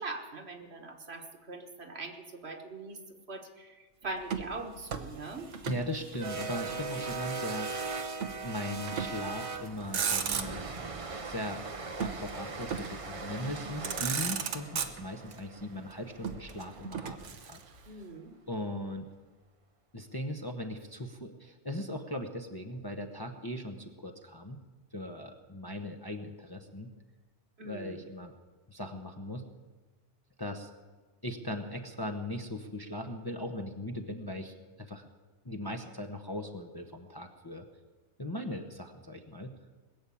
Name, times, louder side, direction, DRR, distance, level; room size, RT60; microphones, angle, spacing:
voice 1, 0.0-3.0 3.3-5.5 17.9-18.3 27.6-28.0, right 3 dB, 60° right, 4 dB, 1.7 m, -41 dB
Motor vehicle (road), 4.2-5.9 6.1-7.2 8.2-8.4 8.9-9.3 9.7-10.8 12.0-13.1 13.6-13.7 13.8-15.4 16.2-17.9, right 7 dB, 85° right, 1.3 m, -35 dB
sound 1, 4.9-17.1, right 4 dB, 35° right, 0.7 m, -40 dB
voice 2, 5.6-8.1 8.4-10.6 11.2-11.7 12.0-17.6 18.5-19.1 19.9-24.6 24.9-26.9 27.6-28.3 28.7-29.4 30.4-30.7 31.2-35.0 35.4-37.7 38.2-39.5, left 1 dB, 20° left, 4 dB, 0.9 m, -39 dB
20.5 x 7.2 x 8.5 m, 1.3 s
omnidirectional pair, 1.2 m